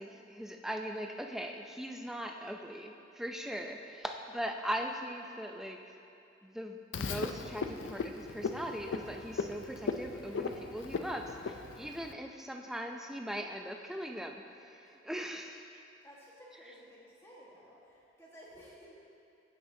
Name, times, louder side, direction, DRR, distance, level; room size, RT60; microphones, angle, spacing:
voice 1, 0.0-5.8 6.4-14.4 14.7-15.8, equal, ahead, 3 dB, 0.4 m, -40 dB
Frog, 6.9-12.1, left 4 dB, 80° left, 0.4 m, -38 dB
voice 2, 16.0-18.9, equal, 15° left, -6 dB, 1.4 m, -55 dB
15.5 x 6.0 x 2.7 m, 2.6 s
head